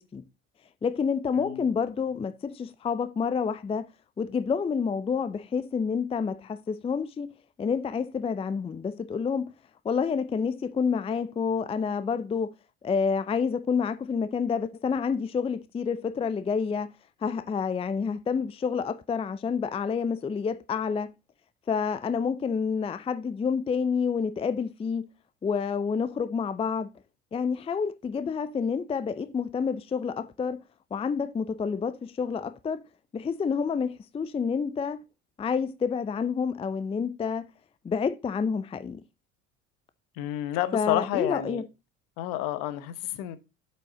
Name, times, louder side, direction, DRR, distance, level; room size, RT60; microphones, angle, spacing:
voice 1, 0.8-3.9 4.2-7.3 7.6-9.5 9.8-12.5 12.8-16.9 17.2-21.1 21.7-25.1 25.4-26.9 27.3-30.6 30.9-32.8 33.1-35.0 35.4-37.5 37.8-39.0 40.7-41.6, left 6 dB, 15° left, 0.5 m, -28 dB
voice 2, 1.3-1.8 40.2-41.6 42.2-43.4, left 13 dB, 60° left, 1.1 m, -30 dB
8.0 x 5.6 x 3.8 m
hypercardioid pair, 70°, 40 cm